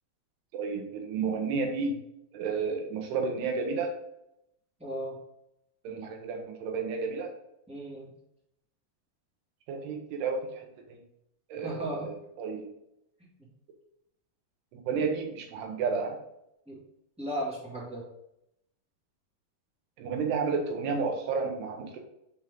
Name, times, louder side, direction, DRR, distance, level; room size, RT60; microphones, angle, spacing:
voice 1, 0.5-2.0 2.3-3.9 5.8-7.3 9.7-11.0 11.5-12.7 14.7-16.2 20.0-22.0, right 5 dB, 85° right, 3 dB, 3.2 m, -31 dB
voice 2, 4.8-5.2 7.7-8.1 11.6-12.1 16.7-16.8 17.2-18.0, right 1 dB, 5° right, -6 dB, 0.9 m, -35 dB
10.0 x 3.7 x 3.7 m, 0.82 s
omnidirectional pair, 4.6 m